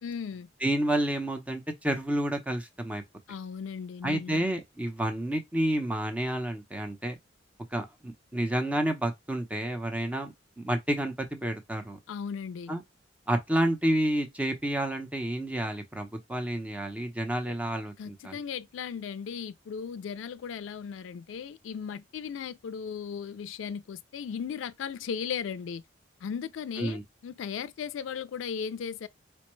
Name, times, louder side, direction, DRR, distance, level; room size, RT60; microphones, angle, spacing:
voice 1, 0.0-0.5 3.3-4.5 12.1-12.7 18.0-25.8 26.2-29.1, left 7 dB, 85° left, 0.3 m, -36 dB
voice 2, 0.6-3.0 4.0-7.2 7.7-12.0 12.7-12.8 13.3-18.4 26.8-27.0, right 1 dB, 5° right, 0.7 m, -30 dB
4.4 x 2.1 x 3.1 m
head